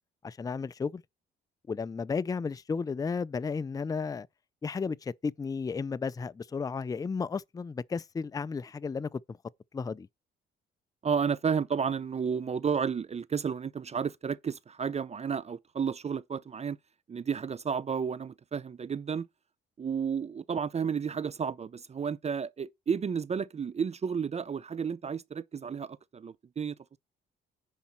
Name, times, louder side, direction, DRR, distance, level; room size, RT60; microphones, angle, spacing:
voice 1, 0.2-1.0 1.7-4.3 4.6-9.4 9.7-10.1, left 5 dB, 20° left, 0.4 m, -33 dB
voice 2, 11.0-16.8 17.1-19.3 19.8-26.8, right 6 dB, 35° right, 0.5 m, -32 dB
10.0 x 4.1 x 5.7 m
cardioid pair, 90°, 20 cm